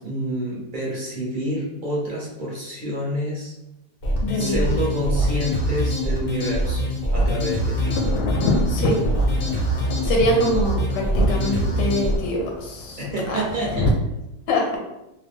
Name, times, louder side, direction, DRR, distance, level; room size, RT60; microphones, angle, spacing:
voice 1, 0.0-3.5 4.3-8.0 13.0-13.9, equal, 40° right, -5 dB, 0.8 m, -28 dB
sound 1, 4.0-12.2, equal, 55° left, 0.6 m, -23 dB
voice 2, 4.2-4.7 8.7-9.0 10.0-13.4 14.5-14.8, equal, 90° left, 0 dB, 1.4 m, -24 dB
Thunder, 7.8-13.9, left 2 dB, 70° left, 1.0 m, -27 dB
3.2 x 2.2 x 3.4 m, 0.92 s
omnidirectional pair, 1.8 m